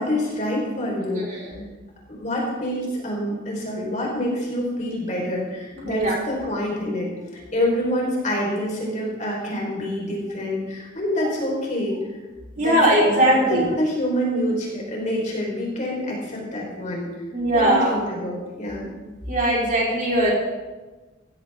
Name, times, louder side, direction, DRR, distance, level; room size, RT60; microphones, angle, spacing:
voice 1, 0.0-1.3 2.1-12.0 12.6-12.8 13.1-17.1 17.5-18.9, left 1 dB, 35° left, -3 dB, 4.8 m, -26 dB
voice 2, 1.1-1.6 5.7-6.2 11.2-11.3 12.6-13.7 17.3-18.0 19.3-20.3, right 1 dB, 40° right, -4 dB, 4.8 m, -20 dB
18.0 x 15.5 x 3.8 m, 1.2 s
head